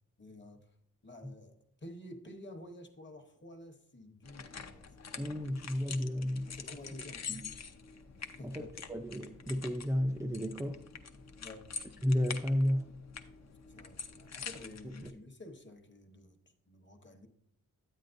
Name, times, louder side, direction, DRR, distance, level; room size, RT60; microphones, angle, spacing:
voice 1, 0.2-0.7 1.0-1.5 1.8-5.4 6.4-7.4 8.2-8.7 11.4-11.7 13.7-16.4 16.7-17.3, left 1 dB, 35° left, 1.0 m, -51 dB
sound 1, 4.2-15.1, left 6 dB, 50° left, 0.7 m, -46 dB
voice 2, 5.2-6.5 7.3-7.4 8.4-10.8 12.0-12.9 15.0-15.1, equal, 10° right, 0.4 m, -32 dB
9.3 x 9.1 x 2.6 m
wide cardioid pair, 150°, 34 cm